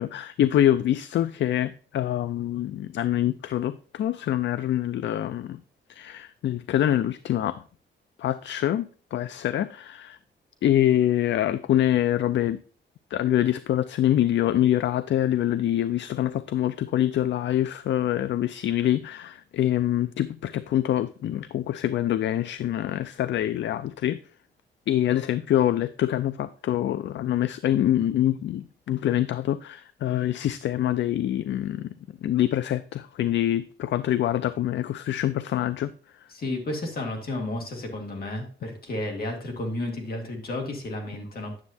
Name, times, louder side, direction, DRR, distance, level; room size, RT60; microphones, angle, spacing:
voice 1, 0.0-5.6 5.9-7.6 8.2-8.9 9.1-10.2 10.6-12.6 13.1-24.2 24.9-31.9 32.2-35.9, left 12 dB, 70° left, 0.4 m, -25 dB
voice 2, 36.3-41.6, left 1 dB, 50° left, 2.1 m, -32 dB
9.6 x 7.1 x 2.7 m
wide cardioid pair, 165°, 20 cm